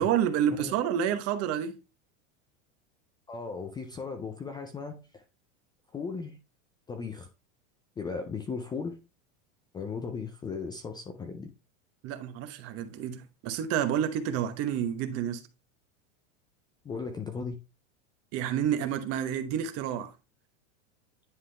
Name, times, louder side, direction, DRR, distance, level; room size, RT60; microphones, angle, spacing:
voice 1, 0.0-1.7 12.0-15.4 18.3-20.1, right 9 dB, 40° right, 1.0 m, -29 dB
voice 2, 3.3-5.2 5.9-6.4 6.9-7.3 8.0-8.9 9.7-11.5 16.8-17.5, left 5 dB, 10° left, 0.4 m, -36 dB
9.9 x 3.7 x 3.3 m
supercardioid pair, 145°, 38 cm